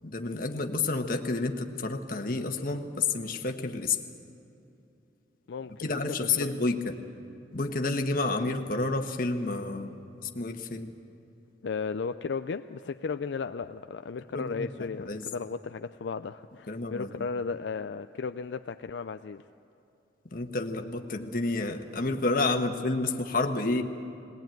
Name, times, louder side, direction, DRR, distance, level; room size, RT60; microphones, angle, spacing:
voice 1, 0.0-4.0 5.8-6.9 7.5-10.9 14.3-15.3 16.7-17.3 20.3-23.8, left 3 dB, 50° left, 5 dB, 1.3 m, -30 dB
voice 2, 5.5-6.5 11.6-19.4, left 5 dB, 75° left, 9 dB, 0.4 m, -35 dB
20.0 x 18.5 x 9.1 m, 2.8 s
head